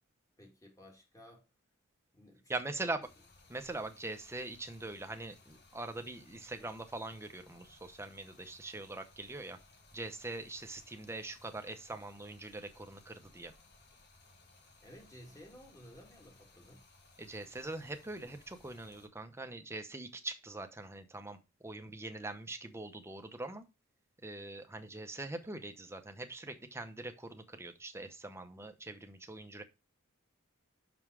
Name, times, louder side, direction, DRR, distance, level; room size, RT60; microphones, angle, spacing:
voice 1, 0.4-1.5 2.1-2.5 2.8-3.0 14.8-16.8, left 1 dB, 15° left, 2.1 m, -55 dB
voice 2, 2.5-3.0 3.5-9.6 9.9-13.5 17.2-23.7 24.2-29.6, right 2 dB, 10° right, 0.8 m, -42 dB
Stream, 3.0-19.1, left 2 dB, 50° left, 1.7 m, -62 dB
6.0 x 5.5 x 4.7 m
head